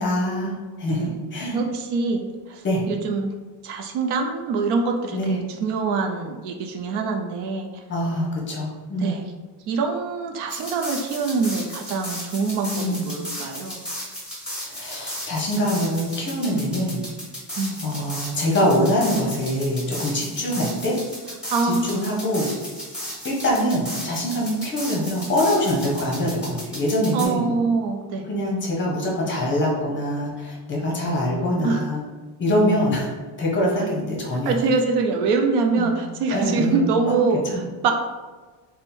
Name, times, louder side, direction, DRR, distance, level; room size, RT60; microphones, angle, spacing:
voice 1, 0.0-1.6 2.6-2.8 5.1-5.4 7.9-9.1 12.8-13.1 14.7-17.0 17.8-21.0 21.8-22.5 23.2-27.5 28.2-32.0 32.4-33.1 33.4-34.6 35.8-35.9 36.3-37.6, equal, 25° left, -2 dB, 0.7 m, -24 dB
voice 2, 1.5-3.3 3.6-7.8 9.0-9.3 9.7-13.8 17.6-18.0 21.5-22.0 27.1-28.3 31.6-31.8 34.5-37.9, right 4 dB, 65° right, 3 dB, 0.6 m, -24 dB
sound 1, 10.5-27.3, equal, ahead, 1.1 m, -35 dB
3.6 x 2.1 x 4.2 m, 1.3 s
cardioid pair, 165°, 44 cm